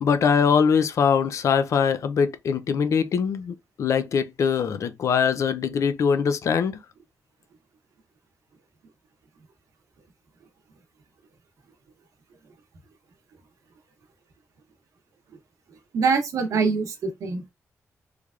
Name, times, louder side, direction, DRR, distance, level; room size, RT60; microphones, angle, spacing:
voice 1, 0.0-6.8, left 6 dB, 70° left, 0.4 m, -22 dB
voice 2, 15.9-17.5, right 5 dB, 90° right, 0.9 m, -24 dB
3.3 x 3.2 x 2.4 m
wide cardioid pair, 125°, 5 cm